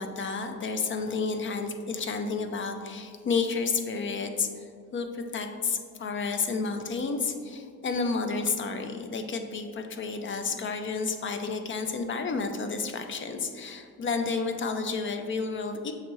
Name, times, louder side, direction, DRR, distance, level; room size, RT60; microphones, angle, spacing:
voice 1, 0.0-15.9, left 4 dB, 40° left, 6 dB, 0.4 m, -31 dB
6.5 x 2.6 x 3.0 m, 2.1 s
cardioid pair, 90°, 30 cm